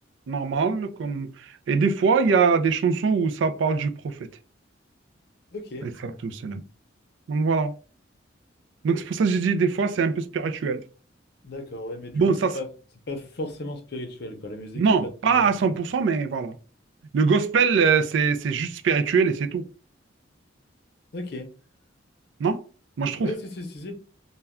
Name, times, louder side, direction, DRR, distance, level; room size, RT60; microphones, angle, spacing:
voice 1, 0.3-1.3 1.7-4.1 6.2-6.6 7.3-7.7 8.8-10.8 12.1-12.6 14.8-16.6 17.1-19.6 22.4-22.6 23.0-23.3, right 5 dB, 70° right, 0.3 m, -22 dB
voice 2, 5.5-5.9 11.4-12.7 13.1-15.0 15.2-15.5 21.1-21.5 23.2-23.9, left 1 dB, 55° left, 0.6 m, -35 dB
2.2 x 2.2 x 3.5 m
head